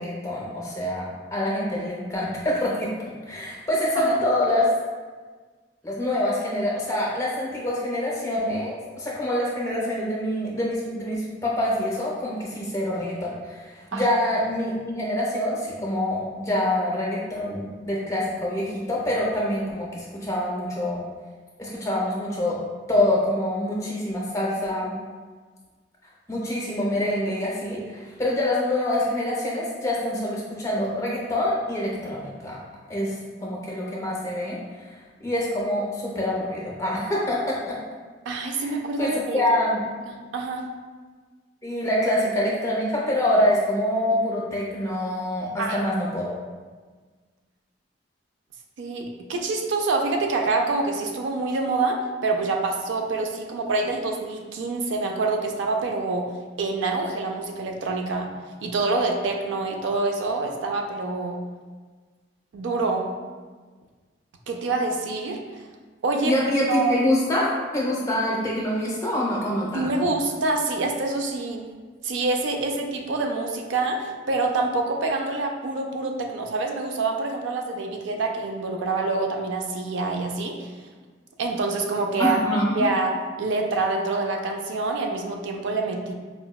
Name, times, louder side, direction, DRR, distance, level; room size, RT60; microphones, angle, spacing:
voice 1, 0.0-2.9 3.3-4.7 5.8-21.0 21.6-22.6 22.9-24.9 26.3-32.6 32.9-33.2 33.4-34.6 34.8-34.9 35.2-37.8 38.5-38.7 39.0-39.8 41.6-46.3 66.2-70.1 82.2-82.9, left 1 dB, 15° left, -5 dB, 0.5 m, -25 dB
voice 2, 38.3-39.4 40.1-40.6 45.6-45.9 48.8-56.3 56.6-58.3 58.6-61.4 62.5-63.1 64.5-65.6 66.0-66.3 66.7-67.0 69.7-71.7 72.0-80.7 81.4-86.1, right 3 dB, 80° right, 2 dB, 0.4 m, -26 dB
4.3 x 2.1 x 2.2 m, 1.4 s
head